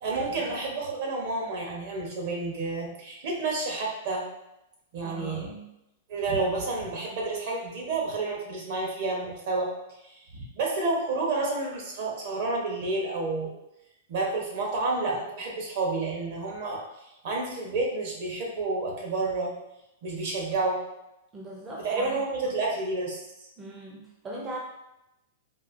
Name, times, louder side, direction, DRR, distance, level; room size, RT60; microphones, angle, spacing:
voice 1, 0.0-4.2 4.9-5.5 6.1-9.7 10.0-13.5 14.1-16.8 17.2-19.5 20.0-20.8 21.8-23.2, right 3 dB, 55° right, -1 dB, 1.0 m, -30 dB
voice 2, 5.0-5.7 21.3-22.2 22.4-22.5 23.6-24.6, right 1 dB, 15° right, -3 dB, 0.5 m, -40 dB
4.1 x 2.5 x 2.6 m, 0.88 s
hypercardioid pair, 150°, 0 cm